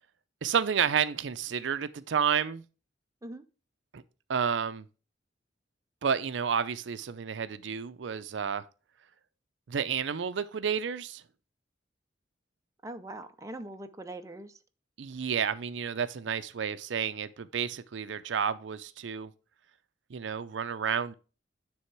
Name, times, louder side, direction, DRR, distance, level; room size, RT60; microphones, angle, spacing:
voice 1, 0.4-2.6 3.9-4.0 4.3-4.8 6.0-8.6 9.7-11.2 15.0-19.3 20.1-21.1, right 7 dB, 75° right, 0.5 m, -30 dB
voice 2, 12.8-14.6, right 1 dB, 15° right, 0.5 m, -42 dB
9.6 x 3.5 x 4.5 m
head